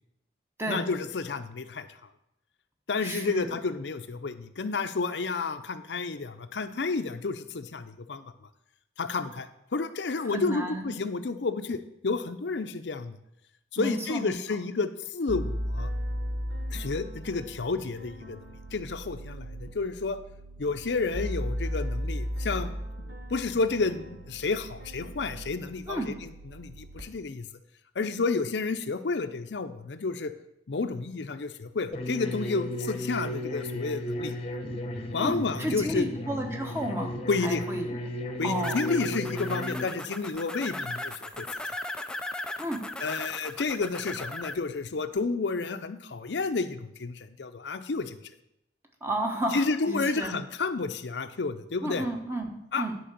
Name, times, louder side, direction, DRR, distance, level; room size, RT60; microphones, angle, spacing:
voice 1, 0.7-1.9 2.9-8.2 9.0-13.1 13.7-15.9 16.7-18.4 18.7-20.2 20.6-22.7 23.3-26.0 26.5-27.5 28.0-30.3 30.7-34.4 35.1-36.1 37.3-37.6 38.4-41.5 43.0-48.2 49.5-52.0 52.7-52.9, left 4 dB, 85° left, 10 dB, 0.6 m, -30 dB
voice 2, 3.0-3.6 10.3-10.9 13.8-14.4 25.9-26.1 35.2-37.1 37.4-38.0 38.4-38.9 42.6-42.8 49.0-50.3 51.8-53.0, right 1 dB, 15° right, 2 dB, 1.2 m, -32 dB
sound 1, 15.3-27.0, equal, 75° right, 1.2 m, -36 dB
sound 2, 31.9-39.8, left 1 dB, 35° left, 0.9 m, -34 dB
sound 3, 38.6-44.5, left 1 dB, 5° left, 0.3 m, -37 dB
10.5 x 4.6 x 6.7 m, 0.81 s
head